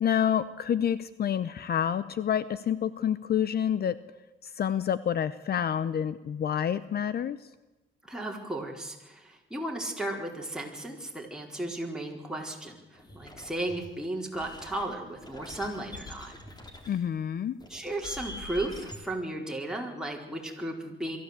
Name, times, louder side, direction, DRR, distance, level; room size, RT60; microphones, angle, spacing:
voice 1, 0.0-4.0 4.4-7.5 16.9-17.5, left 9 dB, 55° left, 15 dB, 0.8 m, -28 dB
voice 2, 8.0-16.3 17.7-21.2, right 1 dB, 5° right, 0 dB, 4.6 m, -35 dB
sound 1, 12.9-13.9 14.3-17.0 17.6-19.0, left 1 dB, 20° left, 3.5 m, -44 dB
23.0 x 14.0 x 8.3 m, 1.1 s
cardioid pair, 90°, 20 cm